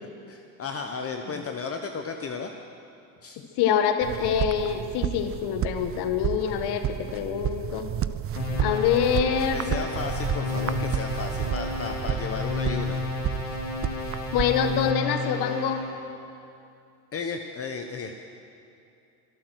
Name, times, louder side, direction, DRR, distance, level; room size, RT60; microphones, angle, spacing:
voice 1, 0.3-2.5 3.2-3.4 9.5-13.0 17.1-18.2, left 5 dB, 30° left, 5 dB, 1.0 m, -34 dB
voice 2, 3.6-7.9 8.6-9.6 14.3-15.8, left 8 dB, 60° left, 7 dB, 1.4 m, -25 dB
sound 1, 4.0-14.9, right 11 dB, 30° right, 0.5 m, -31 dB
sound 2, 8.4-15.9, left 4 dB, 85° left, 4.1 m, -32 dB
24.0 x 9.0 x 6.2 m, 2.6 s
supercardioid pair, 90°, 44 cm